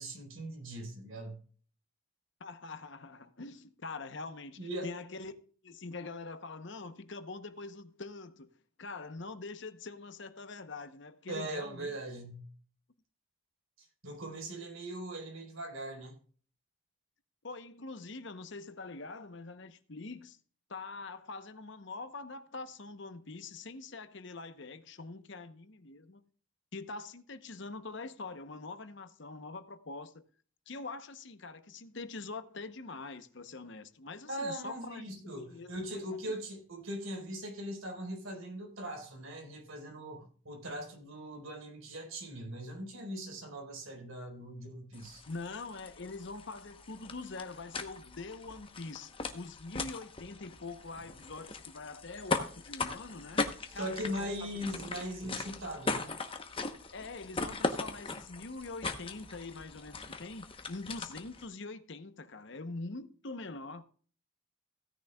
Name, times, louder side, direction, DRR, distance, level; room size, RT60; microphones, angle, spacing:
voice 1, 0.0-1.4 4.6-5.0 11.3-12.5 13.8-16.1 34.3-45.2 53.7-56.1, right 1 dB, 75° right, 4.3 m, -40 dB
voice 2, 2.4-5.3 5.6-8.5 8.8-12.0 17.4-20.4 20.7-26.2 26.7-30.2 30.7-35.7 36.2-36.3 45.3-53.4 53.7-54.6 56.9-63.8, left 3 dB, 55° left, 0.9 m, -44 dB
sound 1, 44.9-61.4, left 3 dB, 25° left, 1.0 m, -39 dB
16.5 x 10.0 x 2.3 m
head